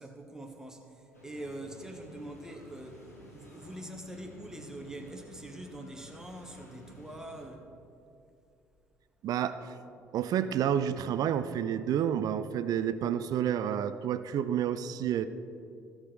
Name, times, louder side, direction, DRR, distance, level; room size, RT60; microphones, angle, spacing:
voice 1, 0.0-7.8, right 1 dB, 5° right, 3 dB, 1.5 m, -44 dB
sound 1, 1.1-7.5, equal, 90° left, 1.4 m, -53 dB
voice 2, 9.2-9.7 10.1-15.3, right 9 dB, 50° right, 13 dB, 0.5 m, -29 dB
16.0 x 6.4 x 3.9 m, 2.6 s
figure-of-eight pair, 50°, 8 cm